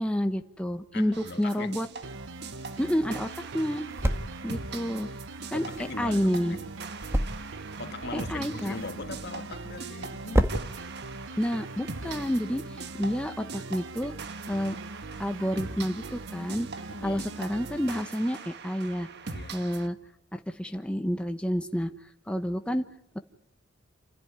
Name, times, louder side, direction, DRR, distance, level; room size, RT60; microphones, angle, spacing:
voice 1, 0.0-1.9 2.8-3.9 4.4-5.1 5.5-6.6 8.1-8.8 11.4-14.1 14.5-14.8 15.2-16.7 17.0-19.1 19.5-20.0 20.3-21.9 22.3-22.8 23.1-23.2, equal, 5° left, 1.1 m, -29 dB
voice 2, 0.9-1.8 5.5-6.7 7.8-10.5 16.9-17.2 19.3-19.7, left 2 dB, 60° left, 1.8 m, -40 dB
sound 1, 1.1-19.9, right 4 dB, 60° right, 1.5 m, -43 dB
sound 2, 1.8-13.0, equal, 15° right, 1.7 m, -34 dB
sound 3, 2.0-18.0, right 3 dB, 75° right, 0.9 m, -42 dB
28.0 x 16.0 x 9.7 m
head